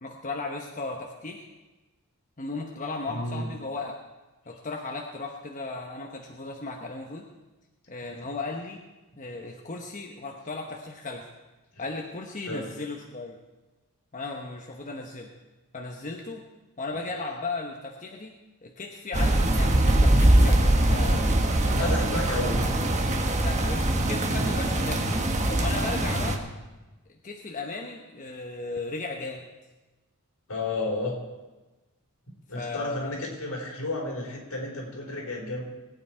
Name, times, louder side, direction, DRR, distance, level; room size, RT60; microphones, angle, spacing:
voice 1, 0.0-1.5 2.4-4.0 4.5-7.3 7.9-8.8 9.2-11.3 11.8-13.4 14.1-15.3 15.7-16.4 16.8-18.3 18.6-21.2 21.6-22.2 23.4-25.1 25.4-26.4 27.1-29.5 32.5-33.1, left 3 dB, 35° left, 1 dB, 1.1 m, -36 dB
voice 2, 3.1-3.5 11.7-11.8 12.5-12.7 21.8-22.5 30.5-31.2 32.5-35.6, left 2 dB, 75° left, -1 dB, 4.4 m, -32 dB
sound 1, 19.1-26.4, right 1 dB, 35° right, 1.3 m, -22 dB
20.5 x 9.0 x 4.5 m, 1.1 s
head